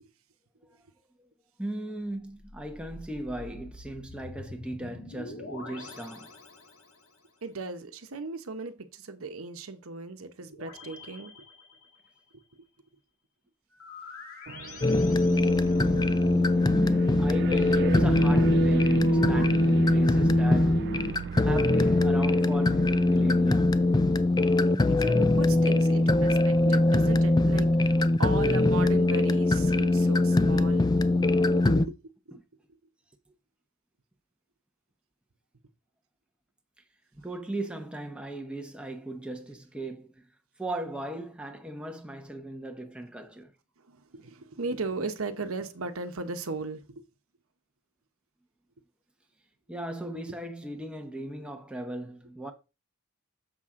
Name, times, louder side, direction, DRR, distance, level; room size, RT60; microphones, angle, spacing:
voice 1, 1.6-6.3 15.8-15.9 16.7-21.1 21.4-24.0 31.0-31.1 32.3-32.4 37.1-40.1 40.6-43.5 49.7-52.5, right 1 dB, 5° right, 0.8 m, -37 dB
sound 1, 2.2-7.2 10.5-12.3 13.7-16.3 19.0-19.5, left 3 dB, 80° left, 2.1 m, -46 dB
voice 2, 7.4-11.3 24.8-30.9 31.2-31.9 32.3-32.4 43.9-46.8, right 3 dB, 75° right, 1.0 m, -36 dB
sound 2, 14.5-24.7, right 6 dB, 50° right, 0.4 m, -36 dB
sound 3, 14.8-31.9, left 2 dB, 20° left, 0.4 m, -22 dB
7.3 x 5.8 x 3.7 m
head